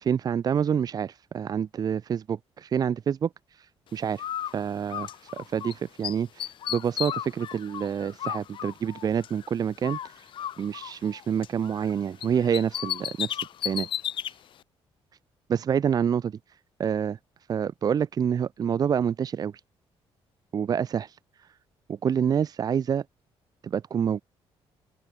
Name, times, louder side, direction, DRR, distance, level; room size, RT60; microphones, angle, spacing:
voice 1, 0.0-3.3 3.6-3.7 3.9-4.3 4.5-10.2 10.6-13.9 15.5-16.4 16.8-17.2 17.5-19.5 20.5-21.5 21.9-23.0 23.6-24.2, right 8 dB, 40° right, 1.5 m, -27 dB
Bird, 4.2-5.7 6.0-9.5 9.8-11.9 12.2-14.3, left 10 dB, 55° left, 4.0 m, -34 dB
open air
cardioid pair, 155°, 10 cm